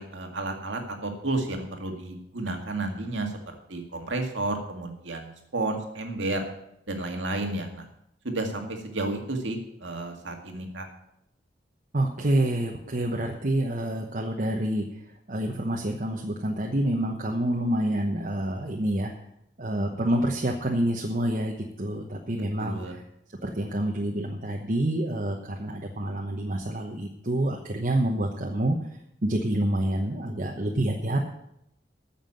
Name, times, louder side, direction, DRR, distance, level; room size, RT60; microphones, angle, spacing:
voice 1, 0.0-6.4 6.9-7.9 8.2-10.9 22.6-23.0, right 2 dB, 90° right, 3 dB, 2.1 m, -32 dB
voice 2, 11.9-14.9 15.3-19.1 19.6-22.8 23.4-28.7 29.2-31.3, right 1 dB, 45° right, 1 dB, 1.0 m, -27 dB
9.3 x 7.3 x 8.7 m, 0.79 s
head